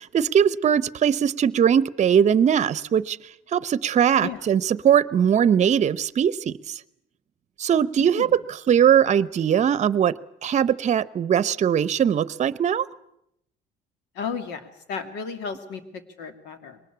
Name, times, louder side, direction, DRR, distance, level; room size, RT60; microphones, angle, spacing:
voice 1, 0.0-3.2 3.5-6.8 7.6-8.4 8.7-10.1 10.4-12.9, right 8 dB, 45° right, 18 dB, 0.8 m, -20 dB
voice 2, 8.0-8.3 14.1-16.8, left 6 dB, 90° left, 8 dB, 2.5 m, -34 dB
22.5 x 19.5 x 8.5 m, 0.78 s
cardioid pair, 110°, 17 cm